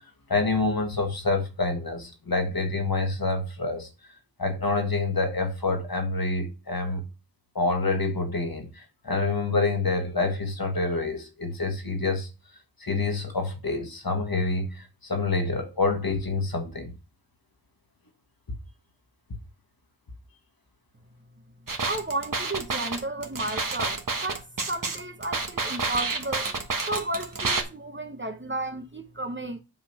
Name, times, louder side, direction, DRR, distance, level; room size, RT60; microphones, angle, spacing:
voice 1, 0.3-3.9 4.4-7.0 7.6-12.3 12.8-16.9, left 3 dB, 50° left, 1.7 m, -27 dB
sound 1, 21.7-27.6, right 4 dB, 45° right, 1.3 m, -29 dB
voice 2, 21.9-26.5 26.9-29.6, right 2 dB, 25° right, 0.9 m, -33 dB
7.8 x 3.7 x 6.0 m
wide cardioid pair, 65°, 45 cm